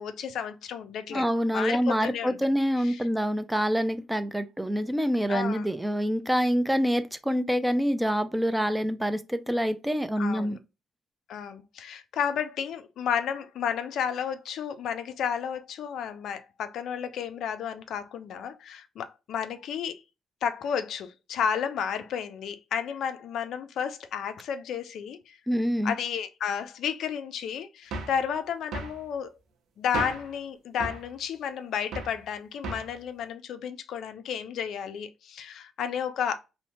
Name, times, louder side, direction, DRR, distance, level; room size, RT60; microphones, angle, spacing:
voice 1, 0.0-1.2 1.5-2.4 2.8-3.0 5.3-5.7 10.2-10.6 11.3-20.0 20.4-25.4 25.8-29.3 29.8-36.4, left 8 dB, 75° left, 0.3 m, -32 dB
voice 2, 1.1-10.6 25.5-26.0, equal, 5° right, 0.3 m, -26 dB
sound 1, 27.9-28.2 28.7-29.0 29.9-30.3 30.8-31.1 31.9-32.2 32.6-33.0, right 3 dB, 80° right, 0.6 m, -35 dB
2.7 x 2.0 x 2.8 m
cardioid pair, 90°, 0 cm